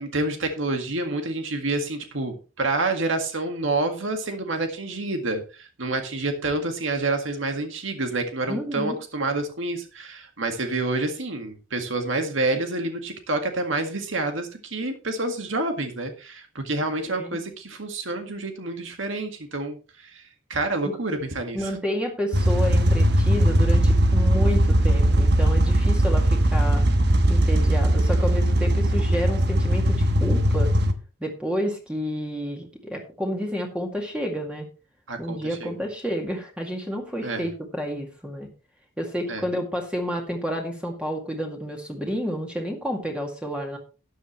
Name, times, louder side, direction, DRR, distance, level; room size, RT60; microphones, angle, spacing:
voice 1, 0.0-21.8 35.1-35.7 37.2-37.5 39.3-39.5, right 2 dB, 75° right, 6 dB, 1.9 m, -28 dB
voice 2, 8.5-9.0 17.1-17.4 21.5-26.8 27.3-30.7 31.2-34.7 35.2-38.5 39.0-43.8, equal, 5° right, 1 dB, 2.0 m, -30 dB
sound 1, 22.3-30.9, right 1 dB, 55° right, 1.2 m, -19 dB
13.5 x 9.9 x 3.2 m, 0.32 s
head